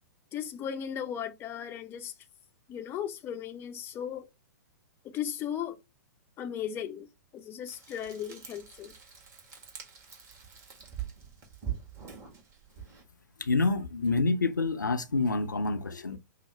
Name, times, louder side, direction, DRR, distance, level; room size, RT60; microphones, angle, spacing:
voice 1, 0.3-2.1 2.7-4.3 5.0-5.8 6.4-7.1 7.3-8.9, left 9 dB, 25° left, 0.5 m, -36 dB
Frying (food), 7.7-13.0, right 9 dB, 30° right, 1.5 m, -43 dB
voice 2, 13.4-16.2, left 3 dB, 85° left, 0.5 m, -27 dB
5.6 x 2.0 x 3.0 m
figure-of-eight pair, 110°, 10 cm